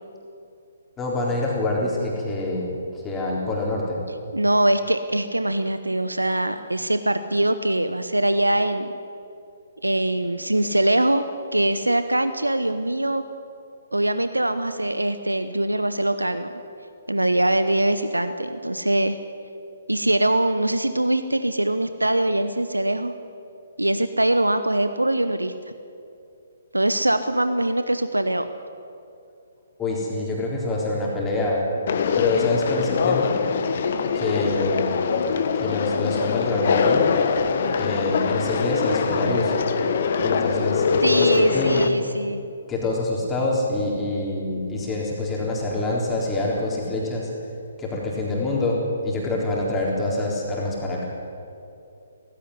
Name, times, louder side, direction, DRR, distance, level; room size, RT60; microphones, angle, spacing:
voice 1, 1.0-4.0 29.8-31.7 32.2-33.3 34.1-35.0 35.5-37.1 37.8-39.5 40.2-41.9 42.7-47.3 47.8-51.0, left 2 dB, 10° left, -3 dB, 3.9 m, -26 dB
voice 2, 4.3-8.9 9.8-11.2 11.5-13.2 13.9-16.5 17.1-19.2 19.9-23.1 23.8-25.7 26.7-28.5 41.0-42.4, right 1 dB, 80° right, 11 dB, 0.9 m, -22 dB
Conversation, 31.9-41.9, left 5 dB, 45° left, 1.4 m, -23 dB
17.5 x 16.0 x 9.7 m, 2.6 s
figure-of-eight pair, 130°, 0 cm